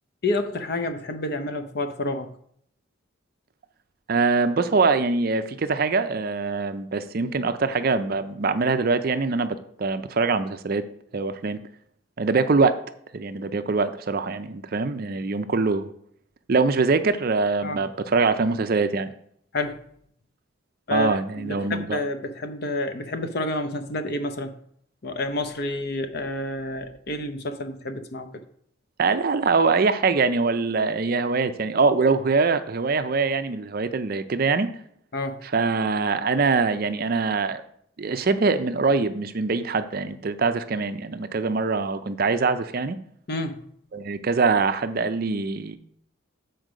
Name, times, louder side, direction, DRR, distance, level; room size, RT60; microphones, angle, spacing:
voice 1, 0.2-2.3 17.6-17.8 19.5-19.8 20.9-24.6 25.0-28.4 35.1-35.4 43.3-43.6, left 2 dB, 50° left, 9 dB, 0.7 m, -29 dB
voice 2, 4.1-10.8 11.1-11.6 12.2-12.8 13.1-15.9 16.5-19.1 20.9-22.0 29.0-34.7 35.4-37.6 38.0-43.0 43.9-45.8, right 4 dB, 45° right, 10 dB, 0.5 m, -23 dB
7.9 x 4.5 x 5.0 m, 0.66 s
head